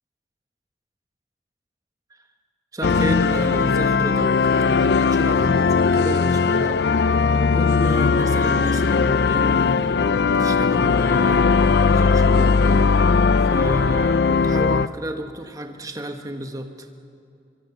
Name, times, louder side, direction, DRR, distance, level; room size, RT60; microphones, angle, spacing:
voice 1, 2.7-6.8 7.3-13.2 13.5-16.9, right 1 dB, 20° right, 5 dB, 1.2 m, -32 dB
sound 1, 2.8-14.9, left 4 dB, 60° left, 0.5 m, -18 dB
24.5 x 23.5 x 7.1 m, 2.5 s
head